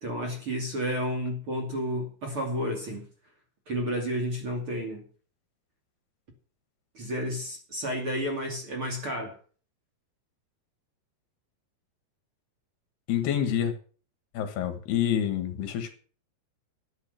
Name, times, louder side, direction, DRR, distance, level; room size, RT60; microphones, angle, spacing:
voice 1, 0.0-3.0 3.7-5.0 6.9-9.3, equal, 35° right, 2 dB, 2.8 m, -31 dB
voice 2, 13.1-13.7 14.4-16.0, left 10 dB, 70° left, 8 dB, 3.5 m, -27 dB
13.5 x 8.9 x 6.7 m, 0.41 s
omnidirectional pair, 5.0 m